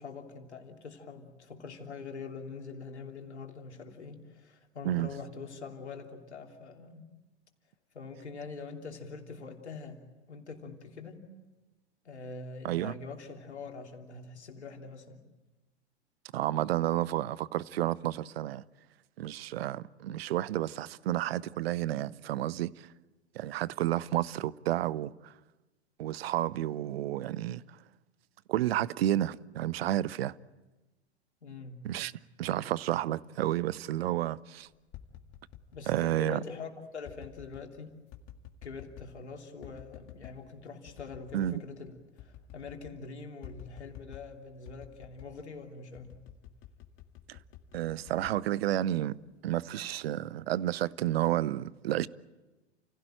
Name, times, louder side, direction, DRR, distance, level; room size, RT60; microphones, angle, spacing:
voice 1, 0.0-7.0 7.9-11.3 12.0-15.2 31.4-31.9 32.5-32.6 35.7-37.9 38.6-46.2, left 4 dB, 80° left, 3.2 m, -44 dB
voice 2, 12.6-13.0 16.3-18.6 19.2-22.9 23.3-25.3 26.0-27.6 28.5-30.4 31.8-32.1 32.4-34.7 35.9-36.4 41.3-41.5 47.3-47.4 47.7-49.2 49.4-52.1, right 13 dB, 65° right, 0.8 m, -31 dB
sound 1, 34.7-36.0 37.0-37.7 38.1-39.2 39.6-40.4 40.9-41.6 41.9-42.0 42.2-43.0 43.4-44.3 44.7-45.4 45.9-49.0 49.5-49.9, left 10 dB, 40° left, 2.1 m, -50 dB
29.5 x 16.5 x 9.1 m
figure-of-eight pair, 95°, 33 cm